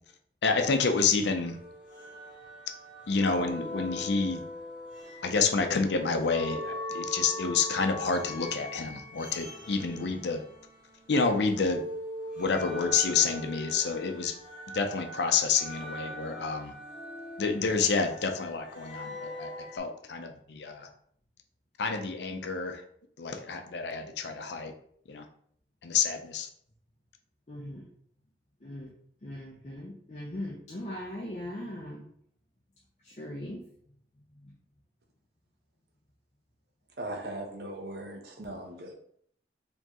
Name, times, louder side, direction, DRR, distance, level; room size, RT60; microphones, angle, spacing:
voice 1, 0.4-1.6 3.1-4.4 5.2-10.4 11.1-11.8 12.4-14.3 14.7-16.7 17.4-20.9 21.8-22.8 23.2-24.7 25.1-25.2 25.8-26.5, left 5 dB, 80° left, 5 dB, 0.6 m, -28 dB
sound 1, 1.3-11.1 11.4-19.8, left 1 dB, 10° right, 1.5 m, -41 dB
voice 2, 27.5-27.8 28.6-28.9 29.2-32.0 33.0-33.6 34.4-34.5, left 1 dB, 40° left, -3 dB, 0.6 m, -39 dB
voice 3, 37.0-38.9, right 1 dB, 65° right, 1 dB, 0.8 m, -39 dB
4.4 x 2.9 x 2.9 m, 0.65 s
head